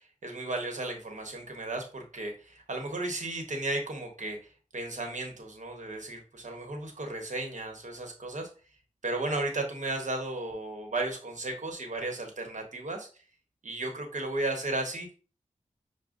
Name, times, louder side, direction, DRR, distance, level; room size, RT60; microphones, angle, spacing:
voice 1, 0.2-4.4 4.7-8.5 9.0-13.1 13.6-15.1, right 2 dB, 65° right, 3 dB, 1.0 m, -34 dB
6.0 x 2.2 x 2.4 m, 0.37 s
cardioid pair, 50°, 13 cm